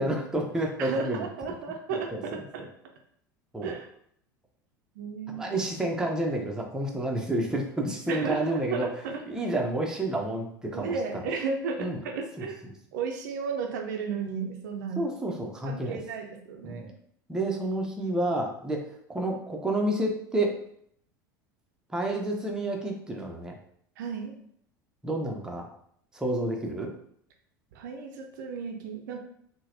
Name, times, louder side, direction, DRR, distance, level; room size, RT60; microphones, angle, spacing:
voice 1, 0.0-1.3 1.9-2.4 3.5-3.7 5.3-8.9 9.3-11.0 11.8-12.0 12.4-12.5 15.0-16.0 16.6-16.9 17.3-20.5 21.9-23.6 25.0-25.7 26.1-26.9, right 1 dB, 5° right, 0 dB, 0.6 m, -29 dB
voice 2, 0.8-2.7 3.6-3.9 5.0-5.6 8.1-9.2 10.6-12.6 12.9-15.1 15.6-16.9 24.0-24.3 27.7-29.2, right 5 dB, 60° right, 3 dB, 0.5 m, -34 dB
3.8 x 2.1 x 2.6 m, 0.67 s
figure-of-eight pair, 75°, 11 cm